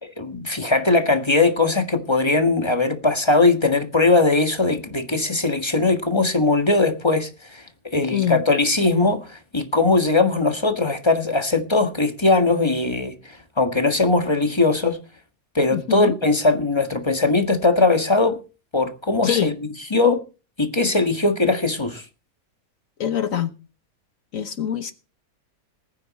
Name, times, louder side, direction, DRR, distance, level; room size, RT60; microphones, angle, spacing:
voice 1, 0.0-15.0 15.5-18.4 18.7-19.5 19.9-20.2 20.6-22.0, left 3 dB, 20° left, 1.5 m, -20 dB
voice 2, 8.1-8.4 15.7-16.2 19.2-19.5 23.0-23.5 24.3-24.9, left 10 dB, 65° left, 1.4 m, -24 dB
19.5 x 9.5 x 4.2 m
omnidirectional pair, 1.5 m